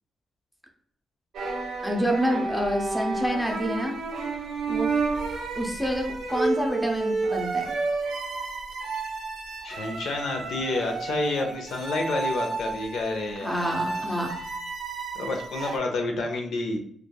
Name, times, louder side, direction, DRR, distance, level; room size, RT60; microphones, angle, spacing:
Violin in the hotel, 1.3-15.8, right 3 dB, 80° right, 0.4 m, -31 dB
voice 1, 1.8-3.9 4.7-4.9 5.6-7.7 13.4-14.3, equal, ahead, 1 dB, 0.5 m, -27 dB
voice 2, 9.6-14.3 15.2-16.8, left 2 dB, 85° left, 3 dB, 0.5 m, -29 dB
3.1 x 2.3 x 2.2 m, 0.63 s
cardioid pair, 120°, 0 cm